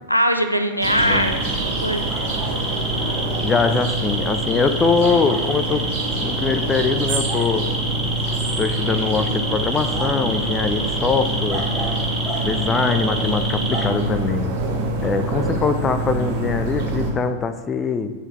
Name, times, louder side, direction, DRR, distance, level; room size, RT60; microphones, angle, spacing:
voice 1, 0.1-2.1, equal, 90° left, 7 dB, 0.4 m, -21 dB
sound 1, 0.8-13.9, right 1 dB, ahead, 1.2 m, -28 dB
sound 2, 0.8-17.1, right 1 dB, 50° right, 1.3 m, -25 dB
voice 2, 1.0-1.3 3.4-5.9 6.2-7.7 8.6-11.7 12.4-14.5 15.0-18.1, left 5 dB, 20° left, 9 dB, 0.4 m, -22 dB
8.9 x 4.0 x 3.1 m, 1.3 s
figure-of-eight pair, 90°, 0 cm